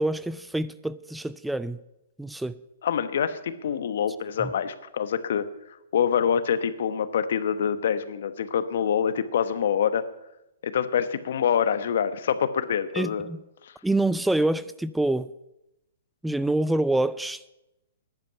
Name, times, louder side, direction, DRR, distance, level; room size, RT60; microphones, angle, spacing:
voice 1, 0.0-1.8 2.2-2.6 4.4-4.5 12.9-13.4 13.8-15.3 16.2-17.4, right 2 dB, 5° right, 0.4 m, -26 dB
voice 2, 2.8-10.0 10.6-13.3 13.6-13.7, left 8 dB, 65° left, 1.1 m, -26 dB
14.0 x 10.5 x 5.8 m
hypercardioid pair, 125°, 0 cm